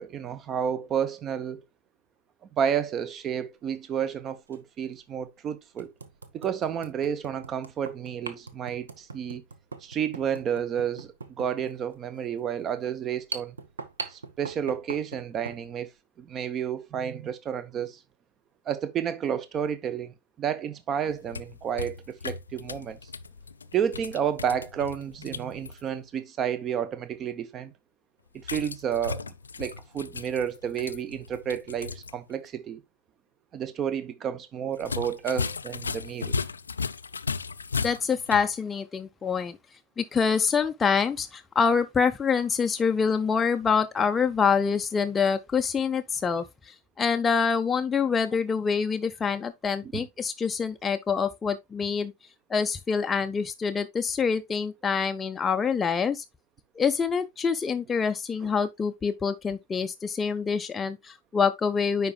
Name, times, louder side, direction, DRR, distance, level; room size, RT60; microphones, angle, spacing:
voice 1, 0.0-1.6 2.5-5.9 6.3-9.4 9.8-13.6 14.1-15.9 16.2-18.0 18.7-23.1 23.7-27.7 28.3-32.8 33.5-36.4 49.8-50.0 58.4-58.5, right 8 dB, 30° right, 0.8 m, -31 dB
sound 1, 2.8-3.0 4.5-4.6 5.1-5.2 5.8-15.6, right 4 dB, 75° right, 0.8 m, -41 dB
sound 2, 21.1-25.8 28.4-32.1 32.4-32.5 34.8-38.5, left 5 dB, 75° left, 0.3 m, -36 dB
voice 2, 37.8-39.6 40.0-52.1 52.5-56.2 56.8-62.1, left 6 dB, 15° left, 0.5 m, -26 dB
9.6 x 4.7 x 2.3 m
figure-of-eight pair, 90°, 0 cm